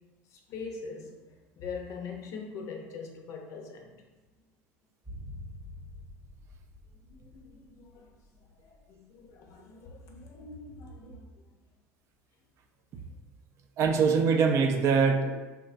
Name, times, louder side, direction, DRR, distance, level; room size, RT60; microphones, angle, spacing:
voice 1, 0.3-3.9 7.1-8.1 8.9-11.3, left 5 dB, 55° left, 2 dB, 0.5 m, -42 dB
sound 1, 5.0-9.3 9.5-9.6, left 1 dB, 10° right, 0.6 m, -47 dB
voice 2, 13.8-15.4, right 5 dB, 50° right, 4 dB, 0.3 m, -23 dB
3.1 x 2.1 x 2.4 m, 1.2 s
hypercardioid pair, 85°, 7 cm